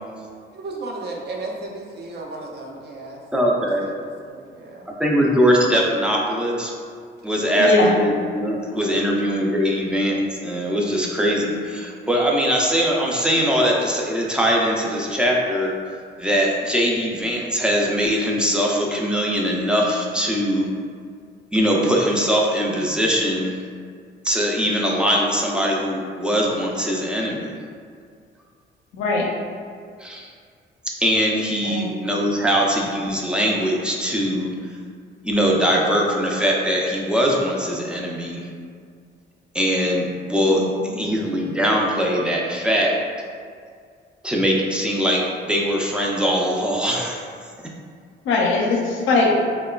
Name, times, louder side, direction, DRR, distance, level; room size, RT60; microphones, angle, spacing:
voice 1, 0.5-3.2 3.5-4.9, right 2 dB, 55° right, -1 dB, 0.5 m, -35 dB
voice 2, 3.3-3.9 4.9-6.7 7.2-10.2 10.4-15.7 16.2-20.7 21.5-23.6 24.2-27.6 30.0-30.3 31.0-34.5 35.2-38.5 39.5-40.6 41.0-42.9 44.2-47.2, equal, 5° right, -2 dB, 0.4 m, -21 dB
voice 3, 7.6-8.0 28.9-29.3 31.6-31.9 40.5-40.9 48.2-49.3, left 3 dB, 80° left, -1 dB, 0.5 m, -20 dB
2.9 x 2.1 x 2.3 m, 2.1 s
cardioid pair, 90°, 20 cm